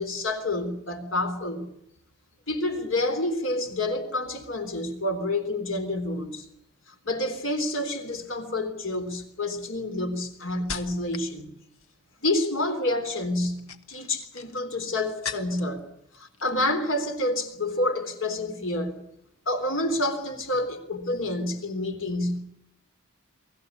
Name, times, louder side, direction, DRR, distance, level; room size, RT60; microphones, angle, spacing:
voice 1, 0.0-1.7 2.5-6.5 7.0-11.5 12.2-15.8 16.1-19.0 19.5-22.4, left 1 dB, 65° left, 3.6 m, -28 dB
sound 1, 7.9-8.2 8.9-11.3 11.6-12.1 13.4-15.8 16.1-16.8 17.0-17.3, left 6 dB, 80° left, 1.6 m, -41 dB
24.0 x 15.0 x 9.8 m
head